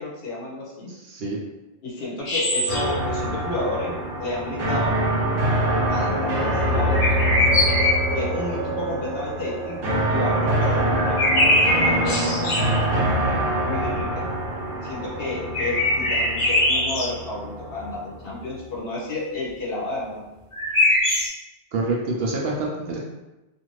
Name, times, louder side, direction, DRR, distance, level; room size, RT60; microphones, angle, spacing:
voice 1, 0.0-0.9 1.8-4.9 5.9-7.4 8.1-12.2 12.5-13.3 13.6-14.3 14.8-20.2, left 2 dB, 60° left, -4 dB, 0.9 m, -31 dB
voice 2, 0.9-1.4 21.7-23.0, right 2 dB, 65° right, -2 dB, 0.7 m, -27 dB
sound 1, 2.2-3.0 6.9-8.2 11.0-12.8 15.5-17.1 20.5-21.3, left 1 dB, 40° left, 0.5 m, -22 dB
sound 2, 2.7-18.6, right 1 dB, 85° right, 1.1 m, -25 dB
sound 3, 5.5-16.8, right 6 dB, 10° left, 0.8 m, -36 dB
2.5 x 2.5 x 3.0 m, 1.0 s
omnidirectional pair, 1.2 m